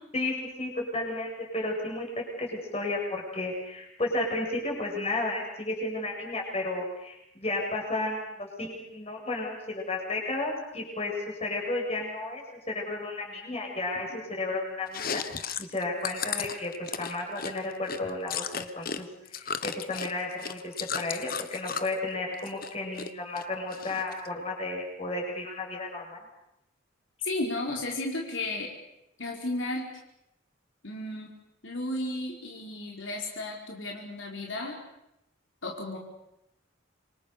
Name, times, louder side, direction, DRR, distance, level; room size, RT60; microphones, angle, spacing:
voice 1, 0.1-11.1 11.4-15.2 15.6-16.7 17.0-26.2, left 2 dB, 30° left, 0 dB, 7.7 m, -33 dB
Chewing mastication, 14.9-19.0 19.3-21.9 22.3-23.1 23.4-24.3, left 7 dB, 50° left, 1.3 m, -35 dB
voice 2, 27.2-28.7 29.2-29.9 30.8-31.3 31.6-34.8 35.6-36.0, left 2 dB, 75° left, 0 dB, 4.7 m, -33 dB
28.0 x 25.0 x 6.9 m, 0.84 s
head